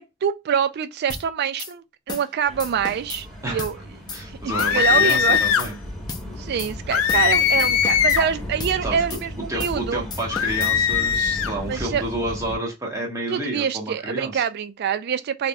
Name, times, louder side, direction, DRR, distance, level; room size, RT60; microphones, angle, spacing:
voice 1, 0.0-3.8 4.4-5.4 6.4-10.0 11.7-12.0 13.3-15.5, right 7 dB, 55° right, 0.3 m, -25 dB
sound 1, 1.1-1.3 1.6-1.7 2.1-2.3 2.6-3.2 3.6-3.7 4.1-4.2 4.6-4.8 5.1-5.7 6.1-6.3 6.6-6.7 7.1-7.3 7.6-8.2 8.6-8.8 9.1-9.2 9.6-9.8 10.1-10.7, left 3 dB, 20° left, 0.6 m, -34 dB
sound 2, 2.5-12.6, equal, ahead, 1.5 m, -36 dB
voice 2, 4.1-5.8 8.8-9.0 9.5-14.4, right 1 dB, 15° right, 1.2 m, -30 dB
sound 3, 4.5-5.7 6.9-8.3 10.3-11.5, left 8 dB, 85° left, 0.4 m, -20 dB
3.8 x 2.9 x 2.3 m
head